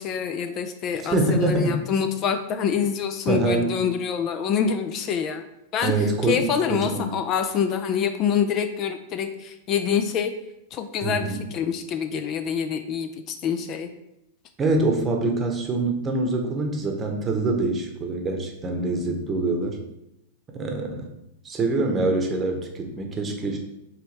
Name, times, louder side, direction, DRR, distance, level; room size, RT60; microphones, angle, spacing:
voice 1, 0.0-5.4 5.7-10.3 10.7-13.9, left 7 dB, 40° left, 8 dB, 0.3 m, -26 dB
voice 2, 1.0-1.8 3.3-3.7 5.8-7.1 11.0-11.4 14.6-19.8 20.5-21.1 21.4-23.6, right 2 dB, 25° right, 2 dB, 0.9 m, -25 dB
4.7 x 3.1 x 3.3 m, 0.86 s
hypercardioid pair, 115°, 0 cm